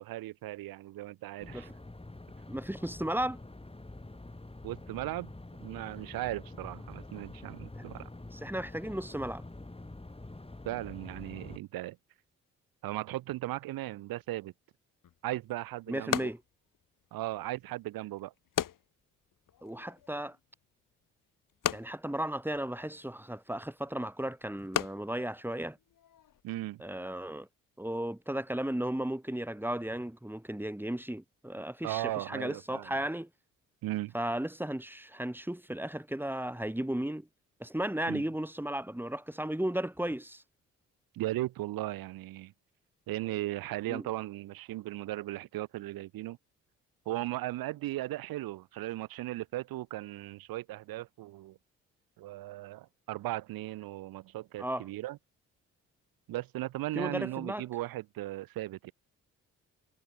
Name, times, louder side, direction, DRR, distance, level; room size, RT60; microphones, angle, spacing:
voice 1, 0.0-1.7 4.6-5.3 5.6-8.1 10.6-12.0 12.8-14.5 15.2-16.3 17.1-18.3 26.4-26.8 31.8-33.0 33.8-34.1 38.1-38.2 41.1-42.5 43.1-46.4 47.1-51.6 52.2-55.2 56.3-58.9, right 16 dB, 75° right, 2.3 m, -37 dB
sound 1, 1.4-11.6, left 2 dB, 15° left, 7.1 m, -46 dB
voice 2, 2.5-3.4 7.7-7.9 8.3-9.4 15.9-16.4 19.6-20.4 21.7-25.8 26.8-27.5 27.8-33.3 34.1-37.3 37.6-40.4 43.9-44.0 54.6-54.8 57.0-57.6, right 1 dB, 5° right, 3.9 m, -35 dB
sound 2, 15.0-26.4, left 10 dB, 65° left, 7.0 m, -40 dB
hypercardioid pair, 50°, 36 cm